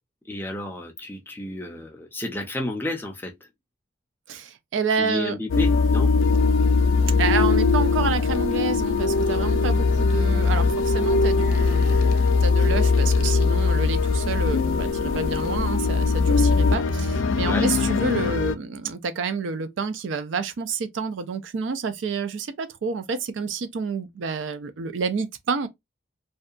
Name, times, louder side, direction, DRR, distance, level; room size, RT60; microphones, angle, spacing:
voice 1, 0.3-3.3 5.0-6.1 17.4-17.7, left 1 dB, 10° left, 0.5 m, -31 dB
voice 2, 4.3-5.4 7.2-25.7, right 5 dB, 65° right, 0.4 m, -29 dB
sound 1, 5.5-18.5, left 4 dB, 70° left, 0.3 m, -21 dB
2.7 x 2.2 x 2.4 m
head